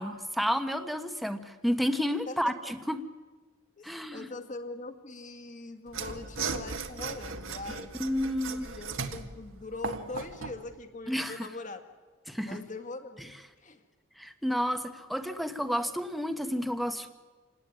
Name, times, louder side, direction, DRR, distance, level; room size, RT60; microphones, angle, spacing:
voice 1, 0.0-3.0 3.8-4.3 8.0-8.7 11.1-11.5 12.3-12.6 14.2-17.1, equal, ahead, 7 dB, 1.2 m, -31 dB
voice 2, 2.3-2.7 3.8-7.9 8.5-11.8 12.3-13.3 13.6-13.8, left 2 dB, 35° left, 7 dB, 2.1 m, -42 dB
Mechanisms / Sawing, 5.9-10.6, right 4 dB, 70° right, 1.7 m, -37 dB
27.5 x 18.0 x 9.7 m, 1.3 s
head